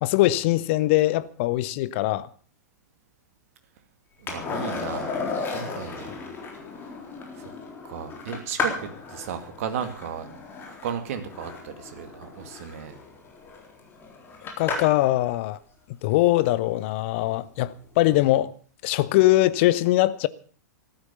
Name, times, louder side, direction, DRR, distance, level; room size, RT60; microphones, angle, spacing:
voice 1, 0.0-2.3 14.6-15.6 16.0-18.5 18.8-20.3, left 16 dB, 40° left, 0.8 m, -22 dB
voice 2, 4.2-5.1 5.5-6.3 7.3-7.5 7.8-10.3 10.7-12.9, right 8 dB, 50° right, 2.3 m, -35 dB
Skateboard, 4.3-15.1 17.7-17.8, left 4 dB, 20° left, 3.9 m, -34 dB
14.5 x 12.5 x 6.9 m
figure-of-eight pair, 100°, 10 cm